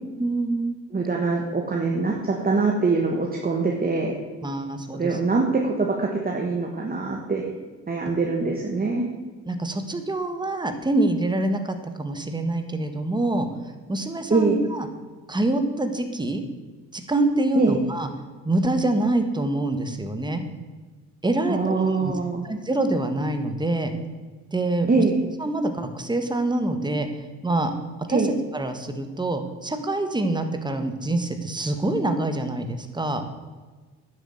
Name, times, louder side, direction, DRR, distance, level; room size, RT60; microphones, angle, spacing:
voice 1, 0.2-0.7 4.4-5.2 9.5-14.9 15.3-16.4 16.9-18.1 18.4-20.4 21.2-22.1 22.4-23.9 24.5-25.0 25.4-27.1 27.4-27.7 28.0-28.2 28.5-33.2, right 2 dB, 15° right, 7 dB, 1.6 m, -25 dB
voice 2, 0.9-4.2 4.9-7.4 7.9-9.1 14.3-14.6 17.6-17.8 21.5-22.5 24.9-25.2 28.1-28.3, right 4 dB, 30° right, 0 dB, 1.7 m, -23 dB
9.9 x 7.8 x 7.9 m, 1.3 s
cardioid pair, 90°, 30 cm